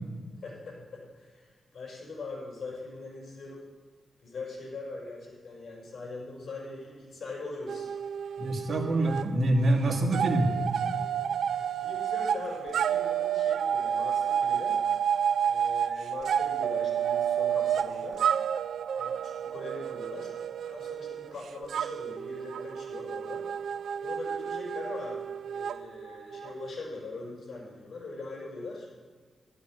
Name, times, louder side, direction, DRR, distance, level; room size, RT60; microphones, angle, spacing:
voice 1, 0.4-3.6 4.2-7.9 11.8-14.8 15.4-18.2 18.9-20.3 20.6-23.5 24.0-28.9, left 3 dB, 55° left, -2 dB, 5.8 m, -41 dB
sound 1, 7.7-9.3 9.6-26.7, right 8 dB, 85° right, 0.3 m, -30 dB
voice 2, 8.4-10.5, right 1 dB, 55° right, 2 dB, 2.1 m, -25 dB
13.0 x 12.5 x 6.5 m, 1.5 s
wide cardioid pair, 105°, 0 cm